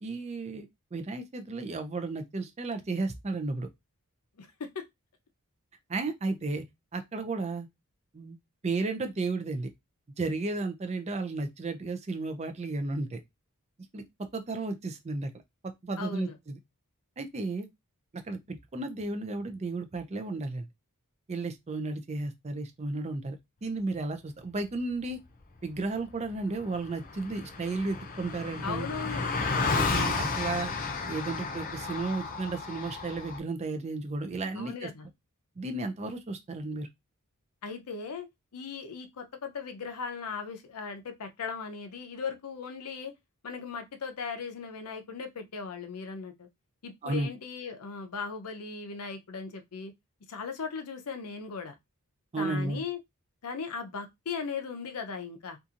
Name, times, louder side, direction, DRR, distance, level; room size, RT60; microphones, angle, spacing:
voice 1, 0.0-0.7 0.9-3.7 5.9-6.6 6.9-7.7 8.1-8.4 8.6-9.7 10.2-13.2 13.9-14.0 14.3-15.3 15.6-16.6 17.2-17.7 18.2-20.7 21.3-23.4 23.6-25.2 25.6-28.9 29.7-30.7 31.0-34.9 35.6-36.9 47.0-47.3 52.3-52.8, right 3 dB, 30° right, 0.4 m, -33 dB
voice 2, 16.0-16.4 28.6-29.3 34.6-35.1 37.6-38.3 38.5-43.1 43.4-46.5 46.8-49.9 50.3-51.8 52.4-53.0 53.4-55.6, left 5 dB, 85° left, 0.6 m, -38 dB
Car passing by, 26.3-26.4 26.5-33.4, left 4 dB, 40° left, 0.6 m, -32 dB
2.7 x 2.5 x 2.5 m
head